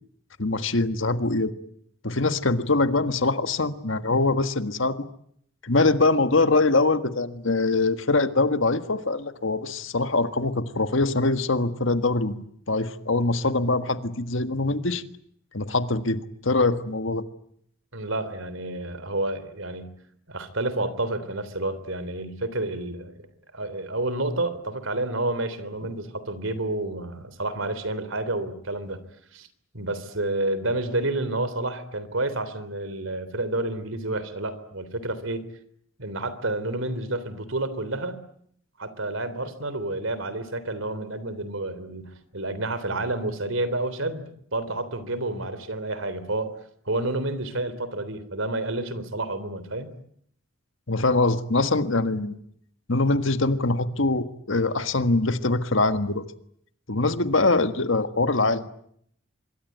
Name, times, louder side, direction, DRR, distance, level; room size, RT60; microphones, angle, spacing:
voice 1, 0.4-1.5 2.0-5.1 5.6-12.4 12.7-15.0 15.5-17.2 50.9-52.4 52.9-56.2 56.9-58.7, left 3 dB, 70° left, 10 dB, 1.7 m, -23 dB
voice 2, 17.9-19.9 20.3-23.2 23.5-29.0 29.3-29.5 29.7-35.4 36.0-38.2 38.8-46.5 46.9-49.9, right 2 dB, 80° right, 14 dB, 3.5 m, -29 dB
25.5 x 23.5 x 9.3 m, 0.68 s
head